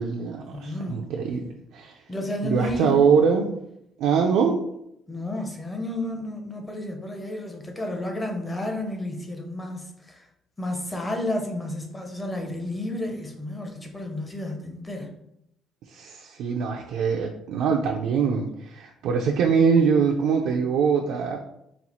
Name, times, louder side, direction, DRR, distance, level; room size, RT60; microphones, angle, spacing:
voice 1, 0.0-2.0 2.4-3.5 4.0-4.6 15.9-21.4, right 6 dB, 70° right, 1 dB, 0.4 m, -23 dB
voice 2, 0.5-1.0 2.1-3.0 5.1-10.3 10.6-15.1, left 1 dB, 10° left, 2 dB, 0.6 m, -31 dB
4.2 x 2.4 x 4.1 m, 0.79 s
cardioid pair, 175°, 0 cm